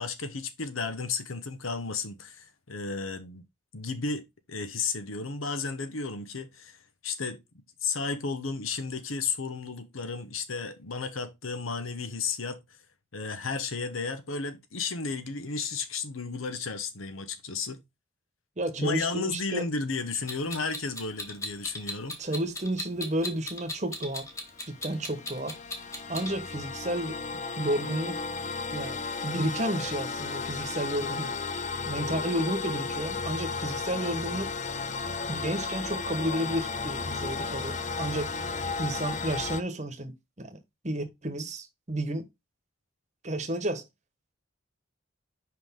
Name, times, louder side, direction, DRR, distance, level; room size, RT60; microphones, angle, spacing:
voice 1, 0.0-3.4 3.7-6.8 7.0-7.4 7.8-12.6 13.1-17.8 18.8-22.2, left 4 dB, 90° left, 1.1 m, -33 dB
voice 2, 18.6-19.6 22.2-24.3 24.7-25.6 26.1-27.2 27.6-28.2 28.7-31.3 31.9-34.6 35.3-40.6 40.8-42.3 43.2-43.9, right 1 dB, 35° right, 1.2 m, -32 dB
Clock, 20.3-26.3, left 2 dB, 15° left, 1.2 m, -37 dB
sound 1, 24.4-39.6, left 4 dB, 35° left, 0.6 m, -34 dB
5.9 x 5.3 x 3.6 m
head